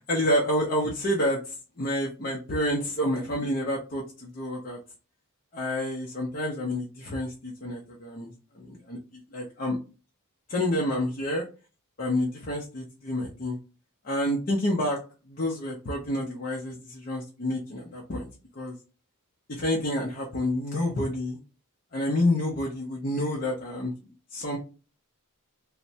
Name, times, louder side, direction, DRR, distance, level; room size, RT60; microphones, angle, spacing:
voice 1, 0.0-4.8 5.5-9.8 10.5-11.4 12.0-13.6 14.0-15.0 15.3-18.3 18.6-18.8 19.5-21.4 21.9-23.9 24.3-24.6, left 1 dB, 40° left, -2 dB, 0.6 m, -29 dB
3.2 x 2.0 x 2.7 m, 0.34 s
head